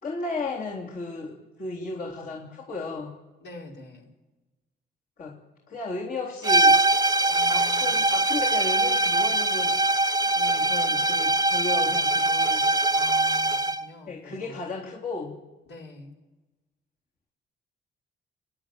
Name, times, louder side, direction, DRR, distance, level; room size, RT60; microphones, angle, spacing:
voice 1, 0.0-3.1 5.2-5.4 5.7-6.8 7.5-9.8 10.2-12.6 14.1-15.4, left 3 dB, 45° left, -4 dB, 3.8 m, -34 dB
voice 2, 3.4-4.1 7.3-8.0 12.9-14.6 15.7-16.2, left 3 dB, 65° left, -1 dB, 5.5 m, -45 dB
sound 1, 6.4-13.9, right 2 dB, 20° right, 0.9 m, -22 dB
29.5 x 11.0 x 9.3 m, 1.1 s
cardioid pair, 90°, 20 cm